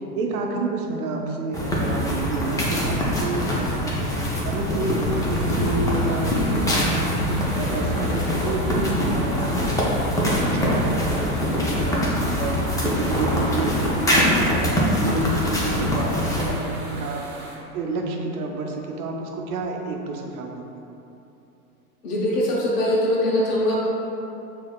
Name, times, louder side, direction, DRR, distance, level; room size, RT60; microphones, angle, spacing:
voice 1, 0.0-13.8 14.1-20.8, right 2 dB, 70° right, 1 dB, 0.7 m, -29 dB
sound 1, 1.5-16.6, equal, 10° left, 0.5 m, -23 dB
sound 2, 5.0-17.6, right 1 dB, 25° right, 0.9 m, -40 dB
voice 2, 22.0-23.8, left 1 dB, 75° left, -5 dB, 1.0 m, -22 dB
6.2 x 2.8 x 2.2 m, 2.9 s
hypercardioid pair, 95°, 46 cm